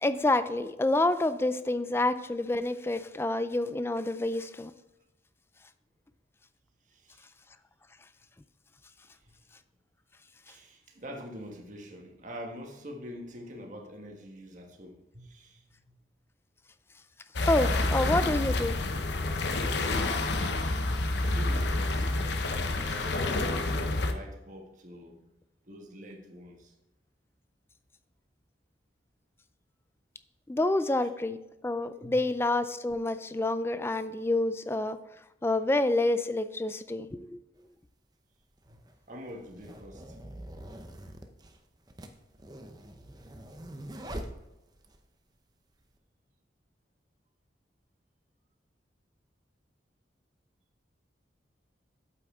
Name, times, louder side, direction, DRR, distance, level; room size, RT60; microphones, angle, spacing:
voice 1, 0.0-4.7 17.5-18.8 22.8-22.9 30.5-31.4 31.6-35.0 35.4-37.4, left 2 dB, 15° left, 0.3 m, -28 dB
voice 2, 6.9-7.3 9.1-9.3 10.5-15.9 20.8-22.2 22.4-25.2 25.7-26.7 32.0-32.2 38.7-38.8 39.1-40.2, equal, 40° right, 1.4 m, -45 dB
sound 1, 17.4-24.1, left 2 dB, 70° left, 0.8 m, -28 dB
sound 2, 37.6-37.7 38.6-45.0, right 1 dB, 20° right, 0.7 m, -44 dB
8.7 x 7.7 x 3.6 m
head